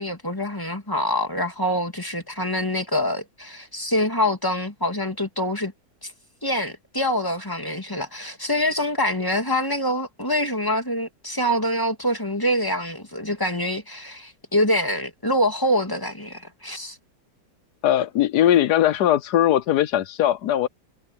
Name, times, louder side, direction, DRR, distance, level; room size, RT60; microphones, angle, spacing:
voice 1, 0.0-5.7 6.0-6.1 6.4-17.0, left 1 dB, 10° left, 2.5 m, -25 dB
voice 2, 17.8-20.7, left 11 dB, 65° left, 1.3 m, -20 dB
omnidirectional pair, 1.9 m